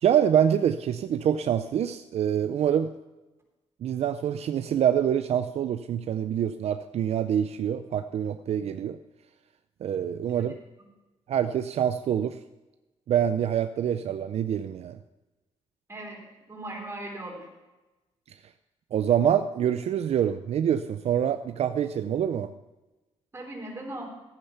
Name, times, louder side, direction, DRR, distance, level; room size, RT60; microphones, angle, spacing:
voice 1, 0.0-2.9 3.8-9.0 9.8-10.6 11.3-12.4 13.1-15.0 18.9-22.5, right 9 dB, 70° right, 11 dB, 0.5 m, -25 dB
voice 2, 15.9-16.2 16.5-17.5 23.3-24.0, right 1 dB, 20° right, -1 dB, 3.8 m, -38 dB
13.5 x 8.8 x 5.8 m, 1.1 s
cardioid pair, 105°, 11 cm